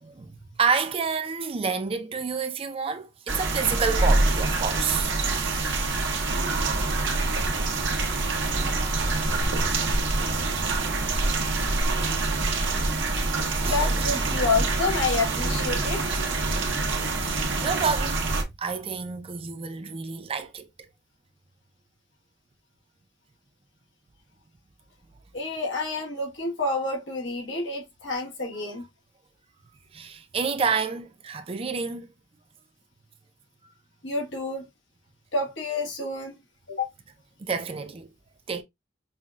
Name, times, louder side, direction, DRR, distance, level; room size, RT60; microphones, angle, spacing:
voice 1, 0.0-6.0 8.5-8.6 13.5-14.4 17.0-17.1 17.6-18.3 18.6-20.7 29.9-32.1 37.4-38.1 38.5-38.6, right 5 dB, 30° right, 0.5 m, -29 dB
sound 1, 3.3-18.4, right 2 dB, 80° right, 1.1 m, -25 dB
voice 2, 13.6-16.2 25.3-28.9 34.0-34.7 35.3-36.4 36.7-36.9, left 3 dB, 85° left, 1.3 m, -28 dB
5.5 x 2.3 x 2.3 m
head